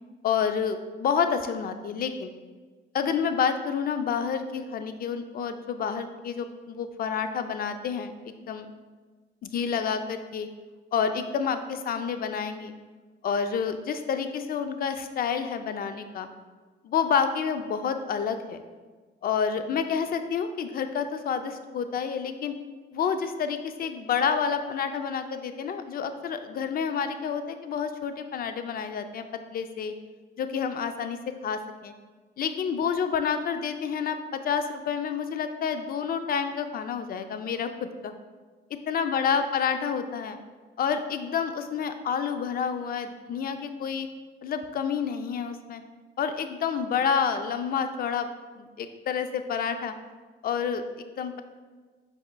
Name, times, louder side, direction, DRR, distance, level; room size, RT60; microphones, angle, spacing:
voice 1, 0.2-2.3 2.9-8.7 9.4-10.5 10.9-12.7 13.2-16.3 16.8-18.6 19.2-22.6 22.9-29.3 29.5-29.9 30.4-31.9 32.4-38.1 38.9-40.4 40.8-44.1 44.4-45.8 46.2-48.3 48.6-49.9 50.4-51.4, left 6 dB, 50° left, 9 dB, 0.4 m, -29 dB
5.4 x 4.2 x 2.2 m, 1.4 s
cardioid pair, 90°, 20 cm